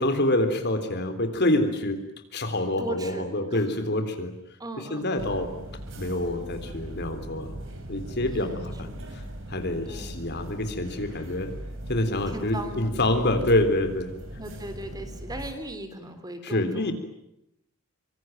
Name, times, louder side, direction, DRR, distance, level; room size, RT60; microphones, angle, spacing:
voice 1, 0.0-2.0 2.3-4.3 4.9-5.5 5.9-7.5 7.9-8.5 9.5-11.5 11.9-14.1 16.4-16.9, left 1 dB, 50° left, 8 dB, 3.6 m, -26 dB
voice 2, 2.8-3.2 3.5-3.7 4.6-5.4 8.2-9.1 9.9-10.2 12.3-12.9 14.4-16.9, right 1 dB, 20° right, 8 dB, 3.5 m, -38 dB
sound 1, 5.2-15.5, right 1 dB, 60° right, 6.7 m, -39 dB
25.5 x 25.0 x 9.1 m, 0.83 s
head